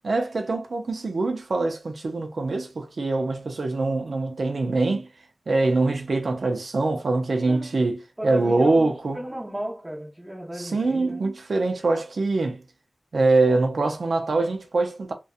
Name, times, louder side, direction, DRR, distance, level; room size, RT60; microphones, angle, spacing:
voice 1, 0.0-5.1 5.5-9.2 10.6-12.6 13.1-15.1, right 3 dB, 85° right, 0.4 m, -24 dB
voice 2, 8.2-11.2, right 1 dB, 20° right, 0.7 m, -35 dB
2.7 x 2.2 x 2.4 m
wide cardioid pair, 75°, 0 cm